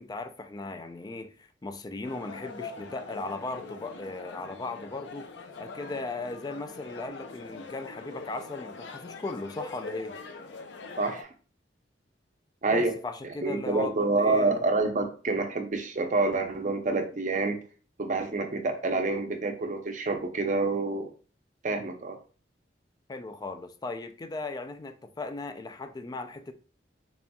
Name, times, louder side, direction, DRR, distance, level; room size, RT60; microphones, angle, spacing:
voice 1, 0.0-5.3 5.6-10.2 12.7-14.6 23.1-26.5, left 2 dB, 20° left, 0.3 m, -37 dB
sound 1, 2.0-11.2, left 4 dB, 75° left, 0.5 m, -43 dB
voice 2, 11.0-11.3 12.6-12.9 13.4-17.6 18.0-21.1 21.6-22.2, right 3 dB, 45° right, 0.6 m, -27 dB
4.2 x 3.4 x 2.3 m
head